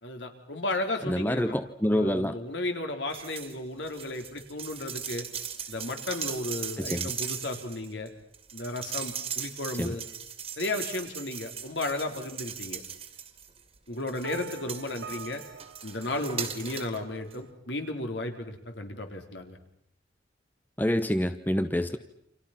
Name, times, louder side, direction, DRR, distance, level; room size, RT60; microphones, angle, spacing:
voice 1, 0.0-1.6 1.8-5.3 5.7-8.1 8.5-10.0 10.6-12.8 13.9-15.4 15.8-19.6, left 2 dB, 65° left, 5 dB, 3.8 m, -34 dB
voice 2, 1.1-2.4 6.8-7.1 9.8-10.0 20.8-22.0, equal, 10° left, 10 dB, 0.9 m, -27 dB
sound 1, 3.1-3.5 3.8-13.6 14.1-17.0 17.3-17.4, right 7 dB, 30° right, 2.4 m, -38 dB
sound 2, 14.2-17.2, right 5 dB, 60° right, 1.1 m, -45 dB
29.5 x 27.0 x 5.9 m, 0.70 s
head